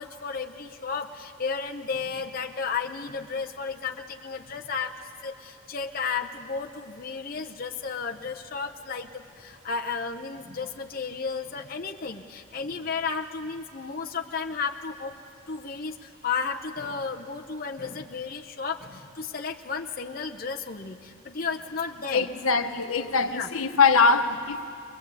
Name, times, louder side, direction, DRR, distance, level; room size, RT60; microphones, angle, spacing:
voice 1, 0.0-15.2 15.5-22.3 22.6-22.7 23.2-23.5, left 5 dB, 45° left, 2 dB, 0.8 m, -33 dB
voice 2, 22.1-24.7, left 4 dB, 80° left, 8 dB, 1.1 m, -22 dB
22.0 x 22.0 x 8.3 m, 2.5 s
head